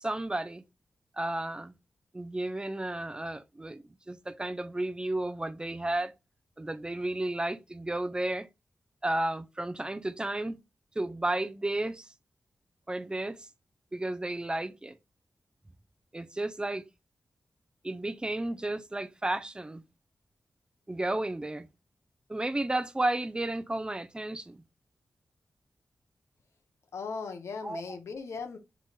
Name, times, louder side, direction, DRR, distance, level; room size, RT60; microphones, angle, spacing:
voice 1, 0.0-0.6 1.2-1.7 2.1-6.1 6.6-8.5 9.0-10.6 11.0-12.1 12.9-13.5 13.9-15.0 16.1-16.8 17.8-19.8 20.9-21.7 22.3-24.6 27.6-27.8, right 1 dB, 20° right, 0.5 m, -32 dB
voice 2, 26.9-28.6, left 4 dB, 80° left, 0.7 m, -38 dB
5.9 x 2.9 x 2.3 m
cardioid pair, 40°, 5 cm